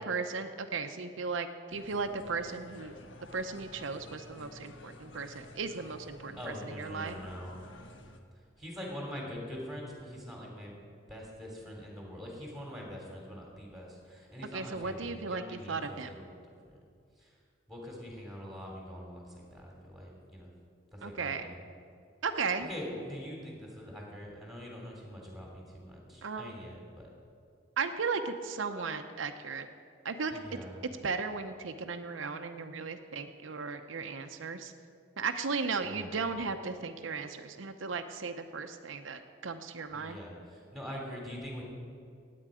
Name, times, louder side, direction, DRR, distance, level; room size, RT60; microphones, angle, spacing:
voice 1, 0.1-2.9 3.3-7.2 14.5-16.1 21.0-21.5 22.2-22.7 26.2-26.5 27.8-29.7 30.0-30.3 31.0-34.7 35.2-40.2, right 4 dB, 90° right, 7 dB, 0.7 m, -36 dB
sound 1, 1.7-8.2, left 1 dB, 85° left, 1.2 m, -51 dB
voice 2, 6.4-7.6 8.6-10.7 11.1-16.2 16.6-16.8 17.2-17.3 17.7-20.5 20.9-21.6 22.6-27.1 30.3-30.9 35.8-36.3 39.9-41.6, equal, ahead, -2 dB, 2.8 m, -44 dB
17.5 x 8.7 x 5.0 m, 2.3 s
head